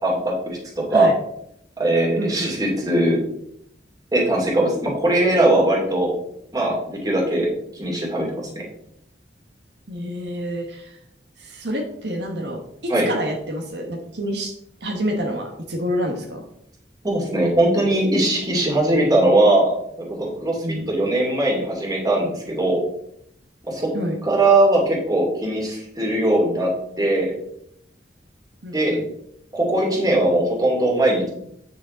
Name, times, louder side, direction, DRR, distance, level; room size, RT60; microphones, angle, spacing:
voice 1, 0.0-0.6 0.9-1.1 1.8-3.2 4.1-6.1 6.5-7.5 7.7-8.6 12.9-13.1 17.0-19.7 20.1-22.8 23.7-23.9 24.2-26.7 27.0-27.3 28.7-29.0 29.5-31.3, right 1 dB, 20° right, -2 dB, 2.6 m, -20 dB
voice 2, 2.2-2.5 9.9-11.0 11.4-14.5 14.8-16.5 20.6-20.9 23.9-24.2 28.6-29.0, equal, 70° right, 2 dB, 1.3 m, -28 dB
8.9 x 6.5 x 3.8 m, 0.72 s
head